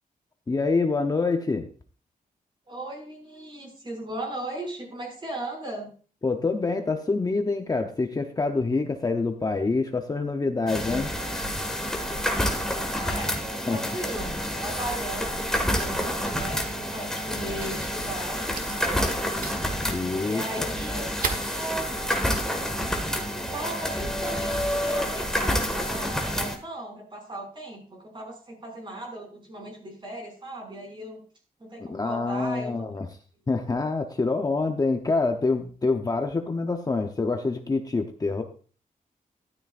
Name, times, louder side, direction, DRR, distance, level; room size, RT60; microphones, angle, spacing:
voice 1, 0.5-1.7 6.2-11.1 13.7-14.0 19.9-20.7 31.8-33.2 33.5-38.4, left 3 dB, 25° left, 4 dB, 0.8 m, -26 dB
voice 2, 2.7-5.9 13.0-19.2 20.2-21.9 23.1-31.2 31.6-32.7, right 1 dB, 30° right, 1 dB, 5.8 m, -37 dB
sound 1, 10.7-26.6, equal, 5° left, 1.7 m, -28 dB
Fire, 14.9-23.6, right 5 dB, 65° right, 1.4 m, -41 dB
13.0 x 12.5 x 2.5 m, 0.40 s
wide cardioid pair, 135°, 15 cm